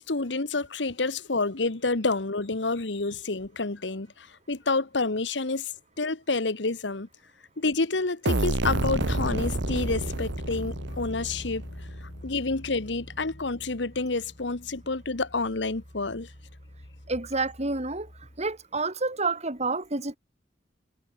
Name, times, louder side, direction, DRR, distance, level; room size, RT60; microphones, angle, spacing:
voice 1, 0.0-5.7 6.0-7.1 7.6-11.6 12.2-16.3, left 3 dB, 75° left, 1.4 m, -29 dB
sound 1, 8.3-11.9, right 2 dB, 90° right, 1.5 m, -29 dB
Bass guitar, 8.7-18.5, equal, 50° left, 3.7 m, -39 dB
voice 2, 17.1-18.1 18.4-20.2, right 3 dB, 40° right, 4.0 m, -29 dB
head